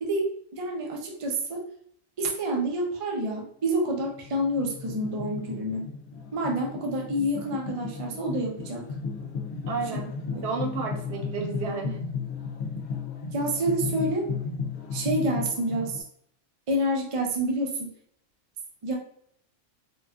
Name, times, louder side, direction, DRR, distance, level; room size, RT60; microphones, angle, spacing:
voice 1, 0.0-1.7 2.2-5.9 6.3-8.9 10.3-10.4 13.3-14.3 14.9-16.0 16.7-17.9 18.8-18.9, right 1 dB, 35° right, 0 dB, 0.6 m, -28 dB
sound 1, 4.0-16.0, left 5 dB, 65° left, 0.9 m, -35 dB
voice 2, 9.7-12.0, right 4 dB, 70° right, 2 dB, 0.8 m, -32 dB
4.5 x 2.4 x 2.4 m, 0.67 s
omnidirectional pair, 1.3 m